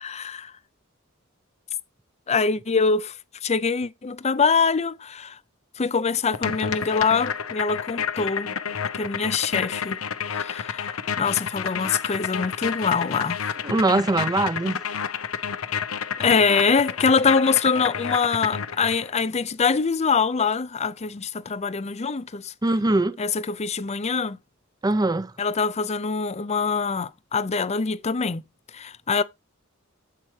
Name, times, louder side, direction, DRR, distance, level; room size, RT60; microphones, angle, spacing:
voice 1, 0.0-0.5 2.3-3.1 3.4-5.4 5.8-8.5 8.9-10.0 10.3-13.4 16.2-22.5 23.2-24.4 25.4-28.4 28.7-29.2, left 5 dB, 30° left, 0.6 m, -24 dB
sound 1, 6.3-19.1, left 7 dB, 90° left, 0.8 m, -30 dB
voice 2, 13.6-14.8 22.6-23.2 24.8-25.3, right 2 dB, 20° right, 0.6 m, -22 dB
8.4 x 7.6 x 3.3 m
head